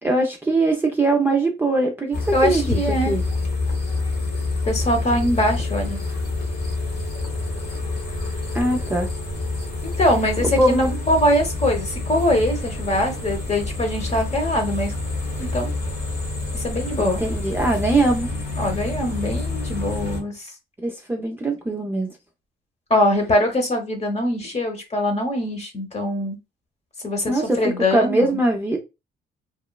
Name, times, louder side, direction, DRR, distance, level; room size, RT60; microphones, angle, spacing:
voice 1, 0.0-2.8 3.1-3.2 8.5-9.1 10.4-10.9 17.0-18.3 20.8-22.1 27.3-27.6 27.9-28.8, right 2 dB, 10° right, 0.5 m, -21 dB
sound 1, 2.1-20.2, left 3 dB, 55° left, 1.2 m, -27 dB
voice 2, 2.3-3.2 4.6-6.0 10.0-14.9 15.4-15.7 16.5-17.2 18.6-20.5 22.9-26.4 27.0-28.4, left 1 dB, 35° left, 1.0 m, -22 dB
3.0 x 2.1 x 2.2 m
cardioid pair, 90°, 20 cm